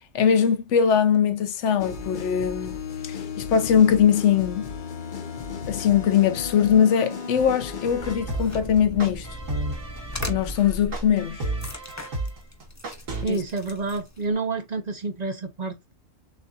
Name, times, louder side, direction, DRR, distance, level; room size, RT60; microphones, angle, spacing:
voice 1, 0.1-2.7 3.0-4.7 5.7-9.3 10.3-11.4 13.3-13.4, left 8 dB, 70° left, 1.0 m, -21 dB
sound 1, 1.8-8.2, left 6 dB, 45° left, 0.7 m, -34 dB
sound 2, 8.0-14.3, left 1 dB, 30° left, 0.3 m, -38 dB
sound 3, 8.0-13.2, right 2 dB, 75° right, 1.9 m, -32 dB
voice 2, 13.2-15.9, right 3 dB, 45° right, 0.6 m, -29 dB
6.4 x 2.5 x 2.6 m
omnidirectional pair, 1.3 m